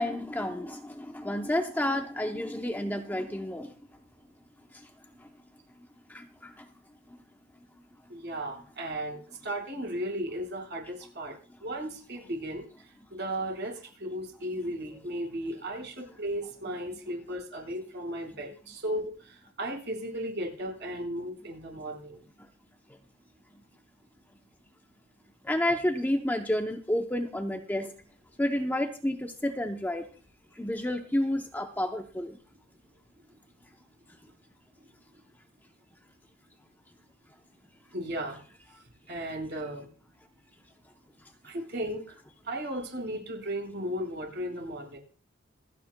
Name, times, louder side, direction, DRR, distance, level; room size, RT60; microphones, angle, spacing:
voice 1, 0.0-3.7 4.7-4.9 5.2-5.3 6.1-6.7 7.1-7.2 25.4-27.9 28.4-30.1 30.5-32.4, left 1 dB, 10° left, 0.7 m, -30 dB
voice 2, 8.1-9.2 9.4-11.3 11.6-12.6 13.1-22.2 37.9-38.4 39.1-39.9 41.4-42.2 42.4-45.0, right 1 dB, 55° right, 4.7 m, -35 dB
27.0 x 9.1 x 2.2 m
head